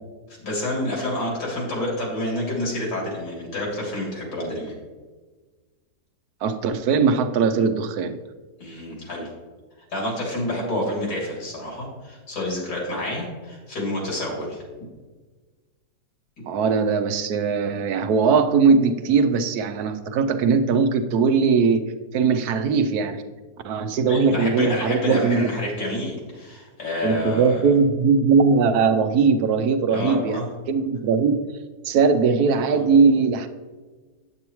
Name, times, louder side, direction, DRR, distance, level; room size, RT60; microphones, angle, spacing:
voice 1, 0.4-4.7 8.6-9.3 9.9-14.6 24.1-27.7 29.9-30.5 32.7-32.8, left 1 dB, 85° left, -3 dB, 3.5 m, -28 dB
voice 2, 6.4-8.2 16.5-21.8 22.1-23.2 23.6-25.5 27.0-31.5 31.8-33.5, right 5 dB, 70° right, 8 dB, 1.0 m, -20 dB
8.8 x 8.2 x 3.0 m, 1.3 s
omnidirectional pair, 1.9 m